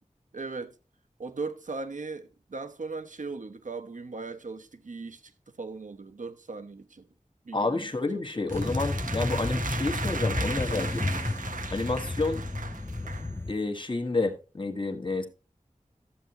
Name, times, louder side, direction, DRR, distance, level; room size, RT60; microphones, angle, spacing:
voice 1, 0.3-0.7 1.2-5.2 5.6-7.1 7.4-7.9 8.1-8.2 9.3-9.4 11.9-12.1, right 3 dB, 70° right, 1.0 m, -38 dB
voice 2, 7.5-11.2 11.7-12.4 13.5-15.3, left 3 dB, 40° left, 1.6 m, -30 dB
sound 1, 8.5-13.5, left 2 dB, 15° left, 0.5 m, -32 dB
sound 2, 8.5-13.3, right 4 dB, 85° right, 0.7 m, -37 dB
13.0 x 7.7 x 2.9 m
wide cardioid pair, 60°, 13 cm